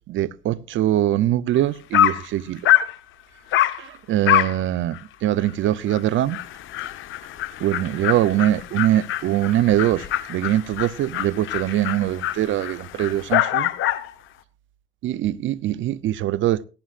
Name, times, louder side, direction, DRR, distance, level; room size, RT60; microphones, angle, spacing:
voice 1, 0.1-2.6 3.8-6.4 7.6-13.7 15.0-16.6, right 13 dB, 75° right, 0.6 m, -22 dB
Dog, 1.6-1.7 1.9-2.3 2.7-3.0 3.5-3.8 4.3-4.6 4.9-5.0 5.4-5.5 5.9-6.0 6.3-14.1, left 13 dB, 85° left, 0.9 m, -24 dB
17.5 x 15.0 x 2.5 m
cardioid pair, 90°, 20 cm